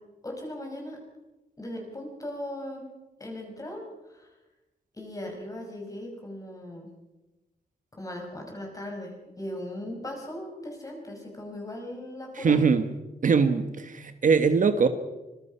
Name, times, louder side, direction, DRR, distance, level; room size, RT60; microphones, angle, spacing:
voice 1, 0.2-1.0 1.6-2.9 3.2-3.8 4.1-4.3 4.9-6.9 7.9-12.7, left 1 dB, 20° left, 2 dB, 5.7 m, -38 dB
voice 2, 12.3-12.9 13.2-14.9, right 5 dB, 55° right, 9 dB, 1.3 m, -22 dB
25.0 x 21.0 x 5.6 m, 1.1 s
wide cardioid pair, 150°, 16 cm